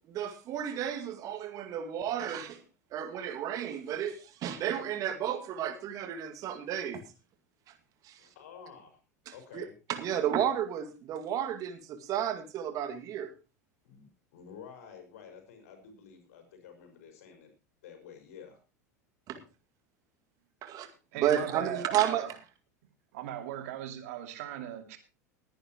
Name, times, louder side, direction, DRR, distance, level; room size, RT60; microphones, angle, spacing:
voice 1, 0.1-2.6 2.9-7.0 8.1-8.2 9.5-13.3 19.3-19.4 20.6-20.9 21.2-22.2, right 10 dB, 40° right, 7 dB, 2.1 m, -32 dB
voice 2, 8.2-9.0 9.3-9.7 13.8-17.5 17.8-18.6 21.3-21.8, left 6 dB, 60° left, 5 dB, 5.4 m, -51 dB
voice 3, 21.1-22.3 23.1-25.0, right 12 dB, 60° right, 7 dB, 2.6 m, -38 dB
20.5 x 10.0 x 3.0 m, 0.30 s
figure-of-eight pair, 85°, 9 cm